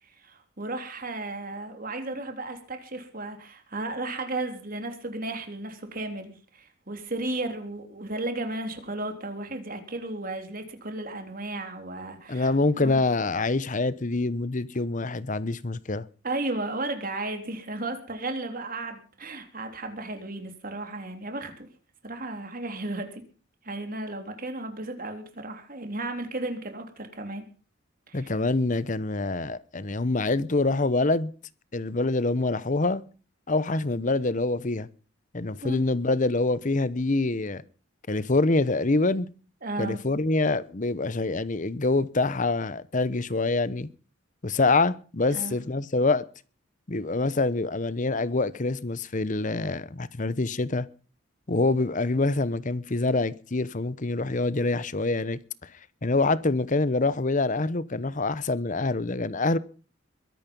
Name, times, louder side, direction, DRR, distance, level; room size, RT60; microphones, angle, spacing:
voice 1, 0.0-13.0 16.2-21.7 22.0-23.2 23.6-27.4 28.1-28.3 35.6-35.8 39.6-40.0 45.3-45.6, right 2 dB, 45° right, 3.4 m, -34 dB
voice 2, 12.3-16.0 28.1-31.3 31.7-33.0 33.5-34.9 35.3-37.6 38.1-39.3 39.8-43.9 44.4-46.2 46.9-50.9 51.5-55.4 56.0-59.6, left 3 dB, 40° left, 0.9 m, -25 dB
22.5 x 10.5 x 5.4 m
head